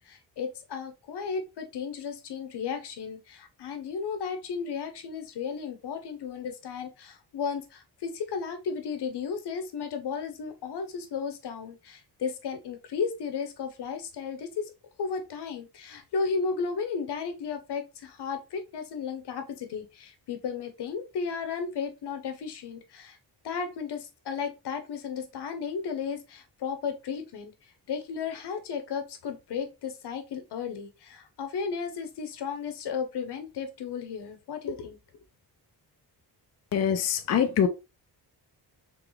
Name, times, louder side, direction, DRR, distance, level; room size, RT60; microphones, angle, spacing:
voice 1, 0.1-14.7 15.0-23.2 23.4-27.5 27.9-35.0, left 5 dB, 75° left, 0.9 m, -34 dB
voice 2, 36.7-37.7, left 8 dB, 40° left, 0.4 m, -24 dB
3.9 x 3.3 x 3.1 m
wide cardioid pair, 170°, 40 cm